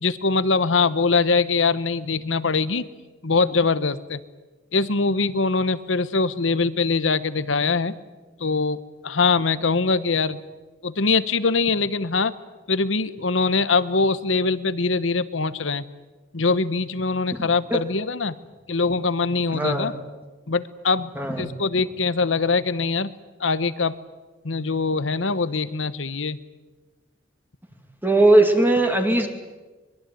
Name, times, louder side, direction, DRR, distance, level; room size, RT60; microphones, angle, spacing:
voice 1, 0.0-2.8 3.2-4.2 4.7-8.0 8.4-10.4 10.8-12.3 12.7-15.8 16.3-18.3 18.7-19.9 20.5-21.1 21.4-23.1 23.4-23.9 24.4-26.4, left 4 dB, 80° left, 15 dB, 1.1 m, -22 dB
voice 2, 19.5-19.9 21.2-21.5 28.0-29.3, right 2 dB, 10° right, 5 dB, 2.4 m, -18 dB
23.5 x 22.0 x 9.4 m, 1.2 s
head